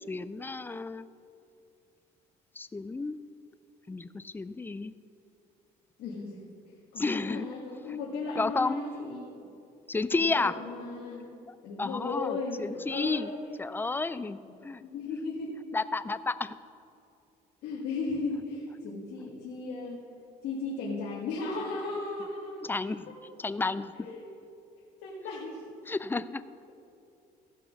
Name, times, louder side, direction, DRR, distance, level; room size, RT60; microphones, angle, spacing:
voice 1, 0.1-1.1 2.6-3.2 3.9-4.9 7.0-7.5 7.9-8.0 8.4-8.8 9.9-10.5 11.5-13.3 13.6-14.8 15.7-16.5 22.6-23.1 23.4-23.9 25.9-26.4, left 3 dB, 10° left, 14 dB, 0.4 m, -31 dB
voice 2, 6.0-6.4 6.9-9.5 10.1-13.6 14.8-15.5 17.6-20.0 20.4-22.8 24.0-24.3 25.0-25.7, left 3 dB, 80° left, -5 dB, 1.8 m, -36 dB
15.5 x 6.1 x 6.2 m, 2.6 s
cardioid pair, 110°, 17 cm